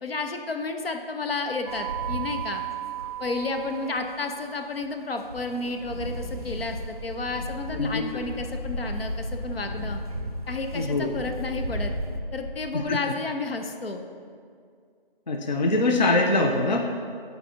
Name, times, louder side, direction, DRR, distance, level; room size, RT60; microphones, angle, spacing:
voice 1, 0.0-2.6 3.2-10.0 10.5-11.9 12.3-14.0, left 3 dB, 80° left, 5 dB, 0.7 m, -31 dB
sound 1, 1.7-12.2, right 4 dB, 40° right, 0.4 m, -37 dB
Wind, 5.8-12.9, left 1 dB, 5° right, 1.4 m, -36 dB
voice 2, 7.7-8.0 10.7-11.2 12.7-13.0 15.3-16.8, left 2 dB, 50° left, 2 dB, 0.4 m, -23 dB
7.9 x 4.1 x 3.9 m, 2.2 s
figure-of-eight pair, 175°, 29 cm